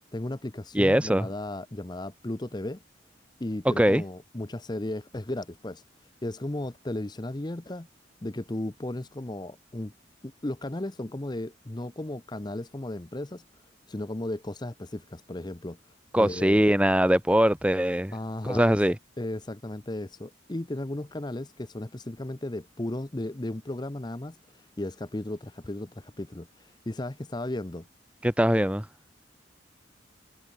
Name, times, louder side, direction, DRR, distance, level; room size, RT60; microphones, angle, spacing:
voice 1, 0.1-2.8 3.4-5.8 6.2-7.9 8.2-9.9 10.2-13.4 13.9-15.8 16.2-16.6 18.1-18.8 19.2-24.3 24.8-27.8, left 1 dB, 20° left, 0.7 m, -35 dB
voice 2, 0.7-1.3 3.6-4.0 16.1-18.1 18.4-19.0 28.2-28.9, equal, 5° right, 0.9 m, -22 dB
head